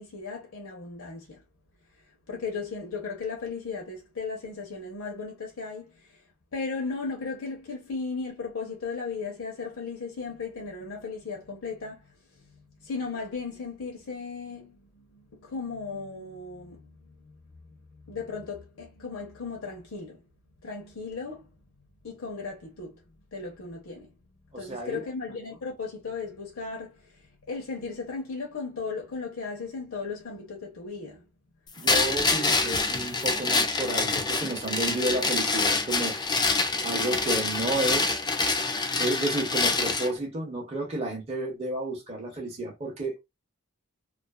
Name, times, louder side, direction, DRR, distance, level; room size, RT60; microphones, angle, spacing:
voice 1, 0.0-1.4 2.3-6.2 6.5-17.4 17.6-20.2 20.6-21.5 22.0-23.0 23.3-24.1 24.5-31.2, left 4 dB, 65° left, 0.7 m, -36 dB
voice 2, 24.5-25.0 31.8-36.2 36.8-38.2 39.0-43.2, right 2 dB, 25° right, 0.6 m, -31 dB
sound 1, 31.9-40.1, left 3 dB, 20° left, 0.3 m, -26 dB
2.4 x 2.4 x 2.2 m
head